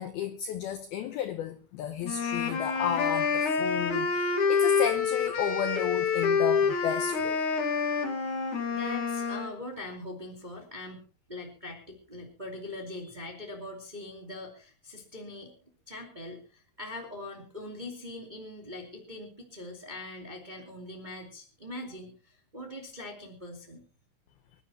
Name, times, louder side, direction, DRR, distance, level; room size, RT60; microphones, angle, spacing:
voice 1, 0.0-7.4, left 9 dB, 85° left, 2.1 m, -33 dB
sound 1, 2.0-9.5, left 5 dB, 55° left, 2.4 m, -27 dB
voice 2, 8.7-11.0 11.3-23.8, left 2 dB, 15° right, 1.5 m, -42 dB
25.0 x 12.0 x 2.9 m
omnidirectional pair, 5.7 m